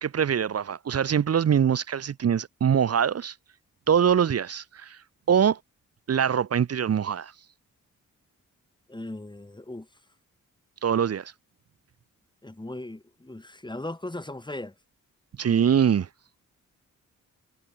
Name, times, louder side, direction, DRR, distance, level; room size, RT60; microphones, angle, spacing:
voice 1, 0.0-3.3 3.9-5.0 5.3-5.6 6.1-7.3 10.8-11.3 15.4-16.1, right 8 dB, 50° right, 0.8 m, -23 dB
voice 2, 8.9-9.9 12.4-14.7, left 1 dB, 15° left, 7.2 m, -38 dB
wide cardioid pair, 100°, 32 cm